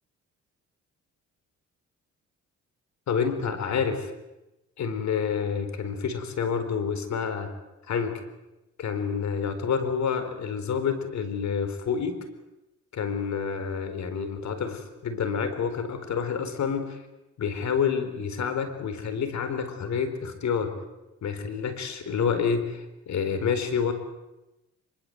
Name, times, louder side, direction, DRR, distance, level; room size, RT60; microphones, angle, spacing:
voice 1, 3.1-4.1 4.8-7.5 7.9-8.2 8.8-12.2 12.9-17.0 17.4-20.7 21.2-23.9, left 6 dB, 65° left, 10 dB, 4.2 m, -28 dB
24.5 x 23.5 x 7.9 m, 0.98 s
cardioid pair, 90°, 30 cm